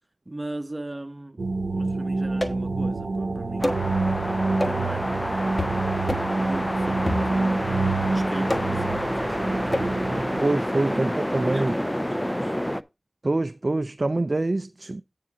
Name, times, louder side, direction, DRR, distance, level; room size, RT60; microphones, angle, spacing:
voice 1, 0.2-3.9 4.2-7.8 8.1-10.4 10.9-11.1 11.5-11.9 12.2-12.6, right 1 dB, 30° right, 1.1 m, -38 dB
sound 1, 1.4-10.4, right 3 dB, 70° right, 0.8 m, -27 dB
sound 2, 2.4-2.8 3.6-3.9 4.6-4.9 5.6-5.8 6.1-6.4 7.1-7.6 8.5-8.9 9.7-10.0, left 1 dB, 25° left, 1.3 m, -29 dB
sound 3, 3.6-12.8, equal, 10° left, 0.5 m, -29 dB
voice 2, 10.4-11.7 13.2-15.0, right 2 dB, 45° right, 0.4 m, -25 dB
9.2 x 3.7 x 6.0 m
wide cardioid pair, 60°, 0 cm